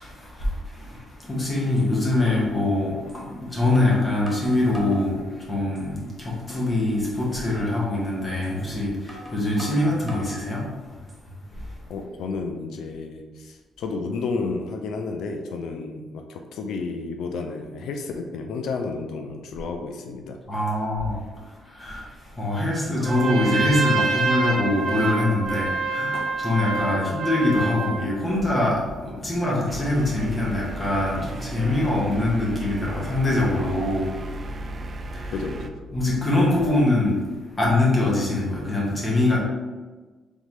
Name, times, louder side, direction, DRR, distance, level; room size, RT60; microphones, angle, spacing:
voice 1, 0.0-10.7 20.5-21.2 21.7-22.0 22.4-34.1 35.1-35.3 35.9-37.2 37.6-39.4, left 2 dB, 30° left, -5 dB, 1.3 m, -23 dB
sound 1, 1.2-1.3 1.8-1.9 3.1-3.2 3.8-5.1 5.6-6.1 6.5-6.6 7.1-7.3 8.4-8.6 9.1-10.4 10.9-11.5, right 1 dB, 10° right, 1.0 m, -41 dB
voice 2, 11.9-20.4 26.9-27.1 35.3-35.8, left 4 dB, 80° left, 4 dB, 0.4 m, -31 dB
Trumpet, 23.0-28.0, right 4 dB, 60° right, 1.0 m, -26 dB
sound 2, 29.7-35.7, right 1 dB, 40° right, 0.3 m, -35 dB
3.7 x 3.6 x 3.1 m, 1.3 s
cardioid pair, 90°, 0 cm